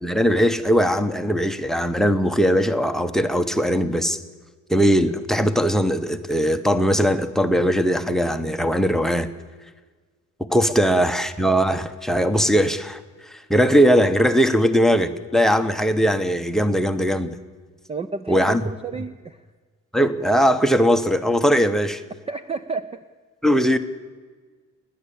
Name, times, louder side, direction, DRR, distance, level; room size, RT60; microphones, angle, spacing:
voice 1, 0.0-4.2 4.7-9.3 10.5-17.4 18.3-18.6 19.9-22.0 23.4-23.8, equal, ahead, 0.8 m, -20 dB
voice 2, 17.9-18.5 18.8-19.4 22.3-23.0, right 4 dB, 20° right, 0.5 m, -30 dB
29.5 x 10.5 x 8.5 m
cardioid pair, 160°, 32 cm